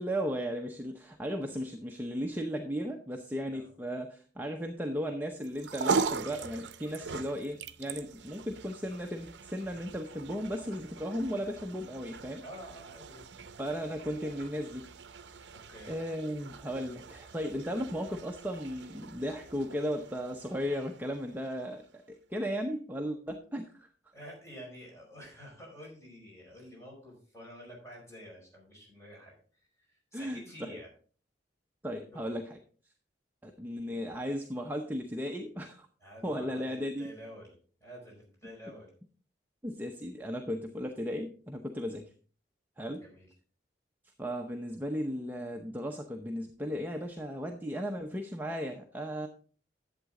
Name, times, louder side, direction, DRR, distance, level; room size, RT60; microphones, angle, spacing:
voice 1, 0.0-12.4 13.6-15.5 15.9-22.0 22.3-23.9 30.1-30.8 31.8-32.6 33.4-35.9 36.2-37.2 39.6-42.1 42.8-43.0 44.2-49.3, equal, 10° right, 3 dB, 0.7 m, -36 dB
sound 1, 5.4-21.9, right 4 dB, 75° right, 0.6 m, -40 dB
voice 2, 12.4-13.2 15.5-16.0 24.1-29.3 29.7-30.9 32.1-32.4 36.0-36.6 37.0-37.5 37.8-38.9 43.0-43.3, equal, 15° left, -3 dB, 5.1 m, -49 dB
11.5 x 8.1 x 3.7 m, 0.42 s
head